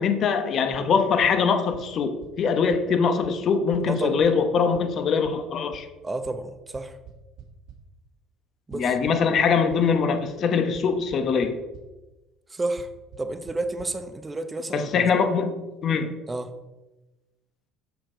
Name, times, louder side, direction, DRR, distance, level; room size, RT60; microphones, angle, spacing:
voice 1, 0.0-5.9 8.7-11.6 14.7-15.6 15.8-16.1, left 5 dB, 45° left, 8 dB, 0.9 m, -23 dB
sound 1, 0.7-0.8 1.2-1.3 1.7-1.8 2.2-2.3 2.7-2.8 3.2-3.3 3.7-3.8 4.2-4.3 4.7-4.8 5.2-5.3 5.7-5.8 6.2-6.3 6.7-7.7 8.7-9.8 10.7-10.8 11.1-11.5 11.7-11.8 12.8-12.9 13.1-13.2 13.5-13.6 13.8-13.9, right 9 dB, 70° right, 1.8 m, -44 dB
voice 2, 3.9-4.2 6.0-7.0 8.7-9.0 12.5-12.9 13.2-15.1 16.3-16.5, right 2 dB, 15° right, 9 dB, 0.7 m, -31 dB
7.0 x 6.1 x 4.4 m, 1.1 s
cardioid pair, 125°, 0 cm